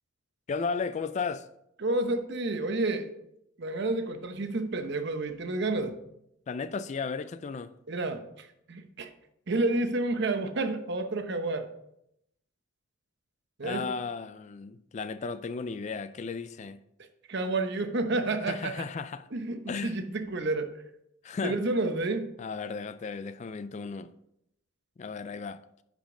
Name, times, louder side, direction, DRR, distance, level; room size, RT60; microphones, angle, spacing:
voice 1, 0.5-1.5 6.5-7.7 13.6-16.8 18.5-19.3 19.7-20.0 21.2-21.6 22.4-24.1 25.0-25.6, left 5 dB, 35° left, 0.3 m, -34 dB
voice 2, 1.8-3.1 3.6-6.0 7.9-9.1 9.5-11.7 13.6-13.8 17.3-18.8 19.3-20.7 21.4-22.3, right 2 dB, 55° right, 0.8 m, -30 dB
10.0 x 5.1 x 3.7 m
head